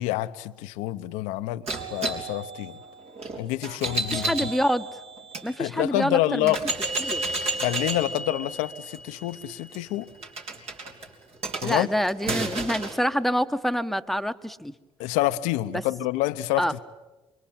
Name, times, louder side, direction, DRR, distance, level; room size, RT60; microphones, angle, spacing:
voice 1, 0.0-2.8 3.4-4.5 5.6-6.7 7.6-10.1 11.6-11.9 15.0-16.8, left 15 dB, 80° left, 0.9 m, -27 dB
sound 1, 1.7-5.5 6.0-6.1 6.5-13.0, right 2 dB, 55° right, 4.2 m, -32 dB
voice 2, 4.1-4.9 5.4-6.5 7.0-7.2 11.6-14.7 16.6-16.7, equal, ahead, 1.3 m, -26 dB
28.0 x 24.5 x 8.8 m
hypercardioid pair, 55°, 13 cm